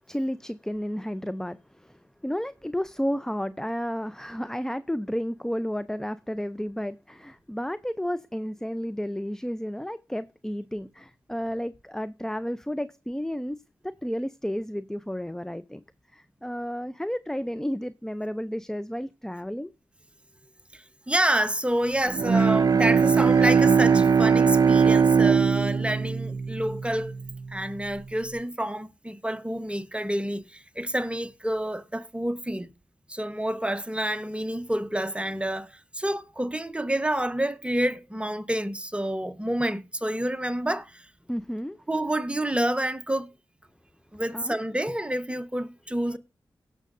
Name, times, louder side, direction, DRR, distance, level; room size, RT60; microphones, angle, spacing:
voice 1, 0.1-15.8 16.1-19.7 41.3-41.8 44.3-44.6, equal, 5° left, 0.5 m, -32 dB
voice 2, 20.7-27.1 27.5-32.7 33.1-41.1 41.9-43.3 44.1-46.2, right 1 dB, 15° right, 1.1 m, -28 dB
Bowed string instrument, 22.1-27.5, right 6 dB, 50° right, 0.4 m, -20 dB
18.0 x 6.4 x 2.6 m
cardioid pair, 50°, 8 cm